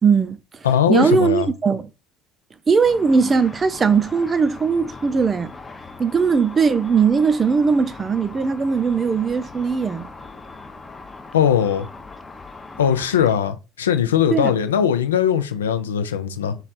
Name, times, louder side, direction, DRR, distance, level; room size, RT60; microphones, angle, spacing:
voice 1, 0.0-0.4 0.9-1.9 2.7-5.5 6.0-10.1 14.3-14.5, right 5 dB, 30° right, 0.5 m, -19 dB
voice 2, 0.6-1.5 11.3-11.9 12.8-16.6, left 8 dB, 85° left, 0.4 m, -20 dB
Car / Traffic noise roadway noise / Engine, 2.8-13.3, left 3 dB, 20° left, 0.6 m, -40 dB
3.2 x 2.3 x 4.1 m
hypercardioid pair, 60°, 0 cm